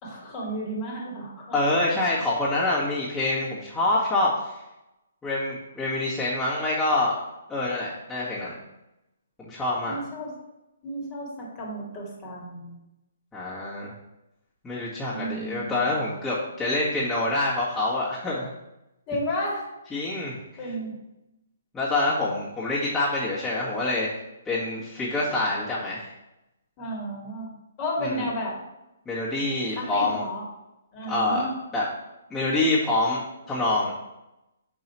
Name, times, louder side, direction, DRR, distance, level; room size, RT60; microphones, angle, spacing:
voice 1, 0.0-1.6 9.8-10.3 10.8-12.8 15.1-15.9 19.1-19.7 20.6-20.9 26.8-27.5 27.8-28.6 29.7-30.4 30.9-31.5, equal, 30° left, -3 dB, 2.0 m, -32 dB
voice 2, 1.5-4.6 5.2-7.2 7.5-8.5 9.4-10.0 13.3-13.9 14.6-18.5 19.9-20.3 21.7-24.1 24.4-26.1 28.0-28.3 29.0-30.2 31.1-31.5 31.7-31.8 32.3-33.9, left 2 dB, 10° left, -10 dB, 1.8 m, -26 dB
5.6 x 4.8 x 4.4 m, 0.93 s
figure-of-eight pair, 130°, 0 cm